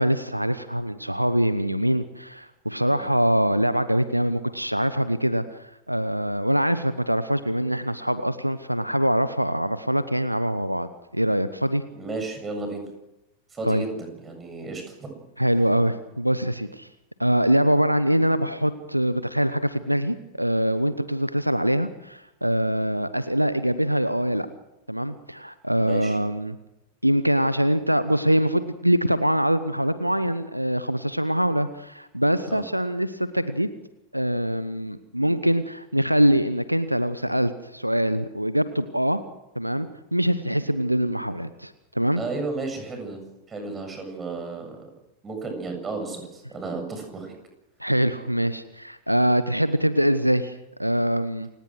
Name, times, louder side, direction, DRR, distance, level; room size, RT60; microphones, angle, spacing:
voice 1, 0.0-5.6 5.9-11.8 13.6-13.8 15.4-16.9 17.2-24.5 24.9-26.6 27.0-33.7 34.1-39.2 39.6-42.2 47.8-51.5, equal, 90° right, 14 dB, 1.0 m, -23 dB
voice 2, 11.9-12.9 13.5-15.2 25.8-26.2 32.5-32.6 42.2-43.2 43.5-44.9 45.2-47.4, right 3 dB, 20° right, 5 dB, 7.8 m, -33 dB
28.5 x 18.0 x 6.3 m, 0.92 s
figure-of-eight pair, 90°, 0 cm